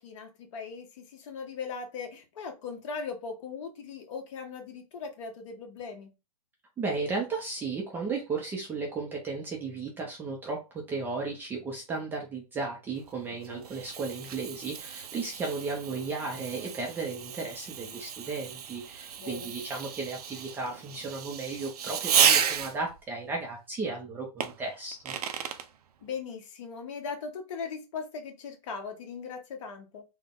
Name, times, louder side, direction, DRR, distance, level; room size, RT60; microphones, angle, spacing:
voice 1, 0.0-6.1 19.2-19.5 26.0-30.0, left 5 dB, 45° left, 4 dB, 1.1 m, -39 dB
voice 2, 6.8-25.2, right 4 dB, 10° right, 0 dB, 0.5 m, -35 dB
Fireworks, 13.0-23.0 24.4-25.7, right 8 dB, 65° right, 0.6 m, -32 dB
3.8 x 2.1 x 3.6 m, 0.27 s
hypercardioid pair, 150°, 21 cm